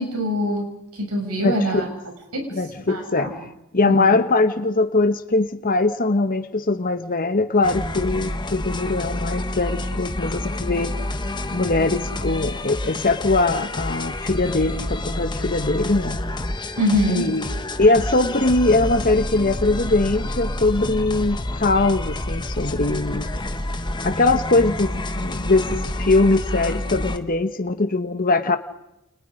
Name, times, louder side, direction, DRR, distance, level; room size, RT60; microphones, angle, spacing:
voice 1, 0.0-1.9 2.3-2.5 2.9-3.3 3.8-4.2 16.8-17.3, equal, 75° right, 2 dB, 7.3 m, -24 dB
voice 2, 1.4-1.9 2.5-3.3 3.7-10.9 11.5-16.2 17.1-17.4 17.8-23.3 24.0-28.6, left 2 dB, 40° left, 9 dB, 1.3 m, -21 dB
sound 1, 7.6-27.2, left 1 dB, 20° left, 1.3 m, -28 dB
30.0 x 29.5 x 5.1 m, 0.87 s
head